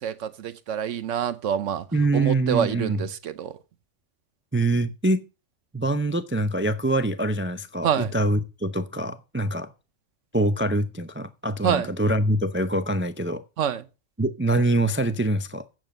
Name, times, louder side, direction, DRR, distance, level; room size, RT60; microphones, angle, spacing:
voice 1, 0.0-1.9 2.1-3.5 7.8-8.1 11.6-11.9 13.6-13.9, right 9 dB, 80° right, 1.1 m, -26 dB
voice 2, 1.9-3.0 4.5-5.2 5.7-9.7 10.3-13.4 14.2-15.7, right 1 dB, 15° right, 0.4 m, -24 dB
9.0 x 7.6 x 6.4 m
omnidirectional pair, 1.3 m